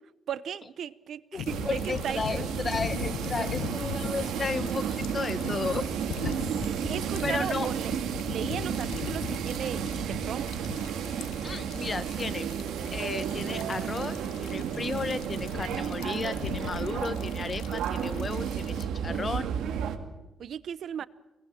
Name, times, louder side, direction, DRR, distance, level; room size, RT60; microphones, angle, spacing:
voice 1, 0.3-2.4 6.6-7.9 8.2-10.5 11.2-11.3 20.4-21.1, right 9 dB, 65° right, 0.8 m, -36 dB
voice 2, 1.3-5.9 6.2-6.3 7.2-7.7 11.4-12.5 12.9-19.5, left 4 dB, 35° left, 1.2 m, -34 dB
sound 1, 1.4-18.8, left 10 dB, 85° left, 1.1 m, -40 dB
sound 2, 1.5-20.0, right 8 dB, 80° right, 2.0 m, -32 dB
26.0 x 19.5 x 7.4 m
cardioid pair, 90°, 0 cm